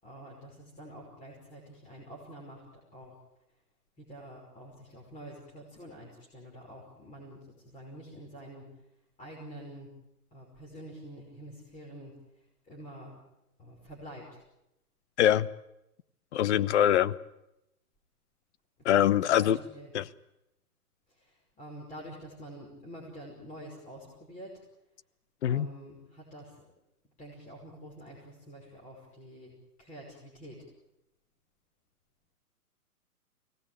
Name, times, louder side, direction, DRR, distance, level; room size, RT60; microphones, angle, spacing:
voice 1, 0.0-2.7 2.9-3.3 4.0-8.8 9.2-9.9 10.3-12.2 12.7-13.2 13.6-14.4 18.9-19.9 21.1-24.6 25.5-26.7 27.2-30.7, right 1 dB, 15° left, -3 dB, 5.5 m, -47 dB
voice 2, 16.3-17.1 18.8-19.6 19.9-20.0 25.4-25.7, left 11 dB, 50° left, 18 dB, 0.9 m, -23 dB
24.0 x 18.5 x 8.8 m, 0.87 s
hypercardioid pair, 125°, 46 cm